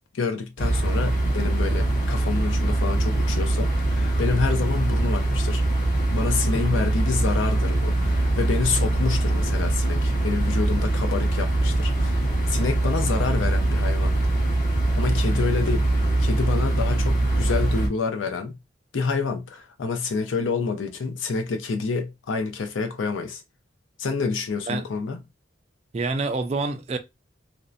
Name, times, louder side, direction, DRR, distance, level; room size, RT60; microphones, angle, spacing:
voice 1, 0.1-5.6 6.1-14.2 15.0-15.9 16.2-18.6 18.9-23.4 24.0-25.2, left 4 dB, 85° left, 0.5 m, -28 dB
sound 1, 0.6-17.9, right 2 dB, 40° left, 0.8 m, -23 dB
voice 2, 25.9-27.0, right 3 dB, 35° right, 0.3 m, -27 dB
2.6 x 2.1 x 2.3 m
head